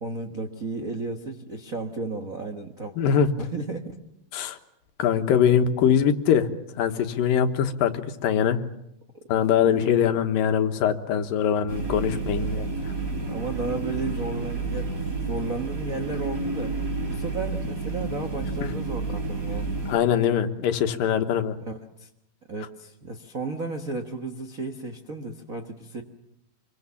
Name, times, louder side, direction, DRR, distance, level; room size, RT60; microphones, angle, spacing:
voice 1, 0.0-2.9 3.4-4.0 6.0-6.1 9.1-9.3 9.6-9.9 12.3-12.6 13.3-14.9 15.2-16.8 17.0-19.7 21.6-22.1 22.5-26.0, right 3 dB, 75° right, 4 dB, 0.7 m, -33 dB
voice 2, 3.0-3.3 4.3-4.6 5.0-6.5 6.8-8.6 9.3-12.7 19.9-21.6, left 8 dB, 80° left, 7 dB, 3.0 m, -22 dB
sound 1, 11.7-20.0, right 3 dB, 25° right, 3.9 m, -30 dB
26.5 x 23.0 x 7.2 m, 0.82 s
omnidirectional pair, 4.0 m